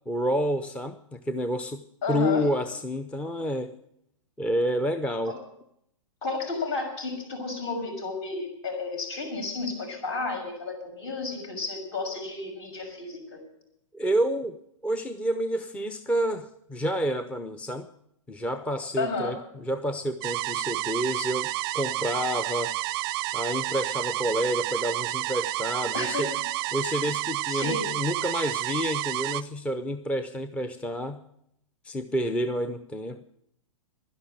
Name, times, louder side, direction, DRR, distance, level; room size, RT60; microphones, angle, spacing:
voice 1, 0.1-3.7 4.4-5.4 13.9-14.6 14.8-17.9 18.3-22.8 23.3-26.3 26.7-31.2 31.8-33.2, equal, 5° left, 10 dB, 0.6 m, -29 dB
voice 2, 2.0-2.5 5.2-5.4 6.2-13.4 19.0-19.3 25.9-26.3 27.0-27.1 27.5-27.8, left 3 dB, 50° left, 3 dB, 6.3 m, -32 dB
sound 1, 20.2-29.4, right 16 dB, 45° right, 0.5 m, -30 dB
11.5 x 10.5 x 9.9 m, 0.77 s
hypercardioid pair, 130°, 17 cm